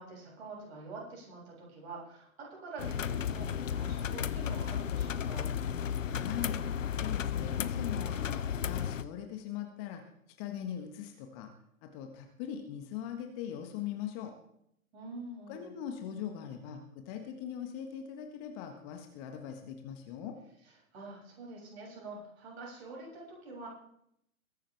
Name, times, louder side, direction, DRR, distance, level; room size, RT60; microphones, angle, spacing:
voice 1, 0.0-5.5 14.9-15.8 20.6-23.7, right 3 dB, 50° right, -3 dB, 7.3 m, -46 dB
sound 1, 2.8-9.0, left 8 dB, 65° left, 0.8 m, -33 dB
voice 2, 6.0-6.6 7.0-10.0 10.4-11.5 11.8-14.3 15.5-20.4, left 9 dB, 25° left, 5 dB, 1.5 m, -40 dB
21.5 x 11.0 x 3.5 m, 0.72 s
figure-of-eight pair, 120°, 42 cm